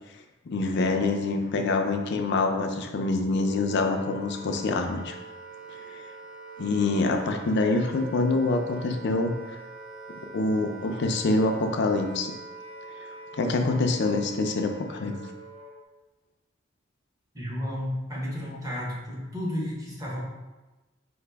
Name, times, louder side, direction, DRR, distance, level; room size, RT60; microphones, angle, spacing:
voice 1, 0.5-5.1 5.9-6.0 6.6-9.3 10.3-12.3 13.0-15.2, left 3 dB, 55° left, 4 dB, 0.4 m, -26 dB
Wind instrument woodwind instrument, 3.2-15.8, right 3 dB, 70° right, 1.5 m, -44 dB
voice 2, 17.3-20.2, left 1 dB, 15° right, -5 dB, 1.0 m, -32 dB
4.9 x 2.6 x 3.4 m, 1.1 s
head